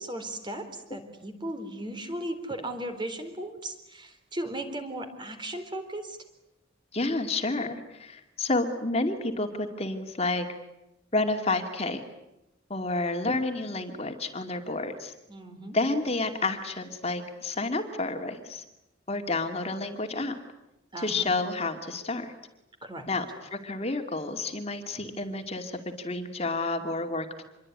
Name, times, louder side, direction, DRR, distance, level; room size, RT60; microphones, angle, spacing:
voice 1, 0.0-6.2 15.3-15.8 20.9-21.3 22.8-23.1, right 1 dB, 25° right, 7 dB, 4.0 m, -36 dB
voice 2, 6.9-10.5 11.1-12.0 12.7-15.1 15.7-18.6 19.1-20.3 21.0-22.3 23.1-23.2 23.5-27.4, left 2 dB, 35° left, 5 dB, 2.6 m, -30 dB
27.0 x 22.5 x 9.8 m, 0.89 s
head